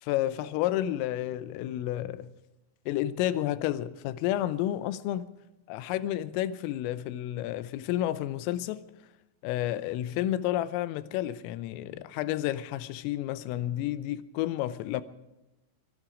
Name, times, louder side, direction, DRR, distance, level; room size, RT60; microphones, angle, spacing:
voice 1, 0.0-2.3 2.9-5.3 5.7-8.8 9.4-15.0, left 13 dB, 85° left, 3.4 m, -31 dB
25.5 x 10.5 x 5.0 m
omnidirectional pair, 5.8 m